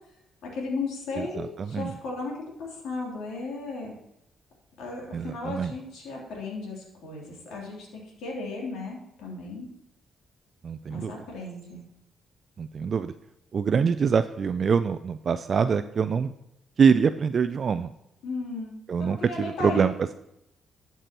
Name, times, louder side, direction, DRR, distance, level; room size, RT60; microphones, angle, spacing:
voice 1, 0.4-3.9 4.8-9.7 10.9-11.8 18.2-19.9, left 3 dB, 85° left, -2 dB, 3.0 m, -35 dB
voice 2, 1.2-1.9 5.1-5.7 10.6-11.1 12.6-13.1 13.5-16.3 16.8-17.9 18.9-19.9, right 6 dB, 45° right, 11 dB, 0.3 m, -24 dB
12.0 x 6.8 x 3.0 m, 0.83 s
cardioid pair, 90°, 0 cm